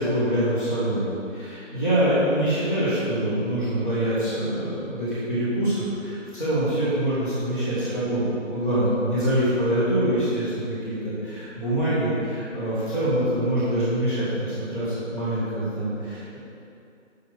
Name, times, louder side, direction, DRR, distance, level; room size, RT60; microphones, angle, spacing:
voice 1, 0.0-8.2 8.5-16.4, right 1 dB, 10° right, -19 dB, 1.6 m, -25 dB
8.7 x 5.8 x 6.2 m, 2.6 s
figure-of-eight pair, 165°, 39 cm